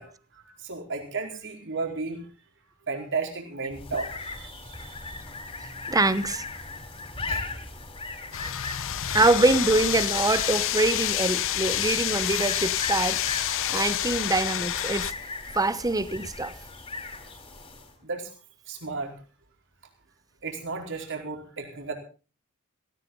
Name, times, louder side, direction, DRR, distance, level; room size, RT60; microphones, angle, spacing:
voice 1, 0.0-2.2 2.9-5.2 7.3-7.4 18.0-18.3 18.7-19.1 20.4-21.9, right 4 dB, 60° right, 4.6 m, -34 dB
sound 1, 3.7-18.0, left 3 dB, 25° left, 4.4 m, -39 dB
voice 2, 5.9-6.4 9.1-15.1 15.5-16.5, right 2 dB, 15° right, 0.9 m, -24 dB
sound 2, 8.3-15.1, left 11 dB, 60° left, 0.9 m, -28 dB
18.0 x 17.0 x 4.0 m
head